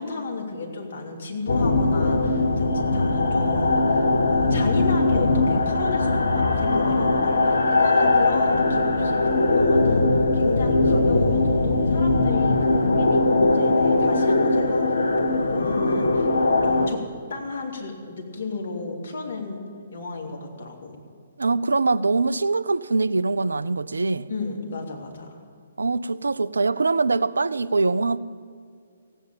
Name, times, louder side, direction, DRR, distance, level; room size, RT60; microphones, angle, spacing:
voice 1, 0.0-10.1 10.3-16.3 16.6-17.0 17.3-21.0 24.3-25.4, left 3 dB, 55° left, 2.9 m, -33 dB
sound 1, 1.5-16.9, left 2 dB, 70° left, 1.1 m, -20 dB
voice 2, 21.4-24.3 25.8-28.2, right 3 dB, 75° right, 0.4 m, -23 dB
16.5 x 8.5 x 9.0 m
figure-of-eight pair, 125°, 0 cm